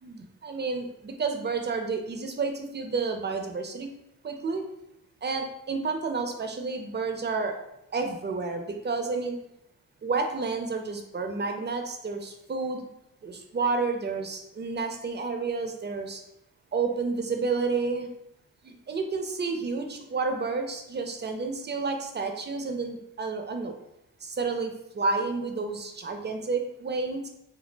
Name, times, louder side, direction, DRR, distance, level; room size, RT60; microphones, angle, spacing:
voice 1, 0.0-3.9 4.2-4.6 5.2-7.6 7.9-9.4 10.0-12.8 13.2-16.2 16.7-18.1 18.6-23.8 24.2-27.3, right 4 dB, 30° right, 5 dB, 0.4 m, -30 dB
2.1 x 2.0 x 3.2 m, 0.83 s
cardioid pair, 55°, 36 cm